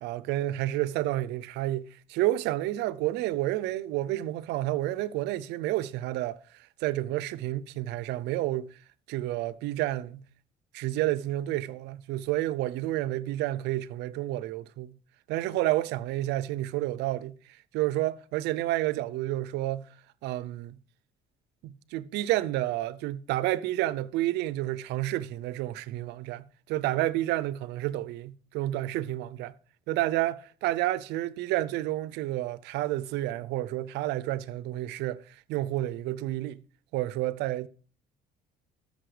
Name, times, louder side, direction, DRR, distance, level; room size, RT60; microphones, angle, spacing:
voice 1, 0.0-6.4 6.8-8.7 9.1-10.2 10.7-14.9 15.3-17.3 17.7-19.9 20.2-20.8 21.6-29.6 29.9-36.6 36.9-37.7, right 15 dB, 85° right, 0.6 m, -30 dB
13.0 x 6.6 x 4.9 m
cardioid pair, 110°, 17 cm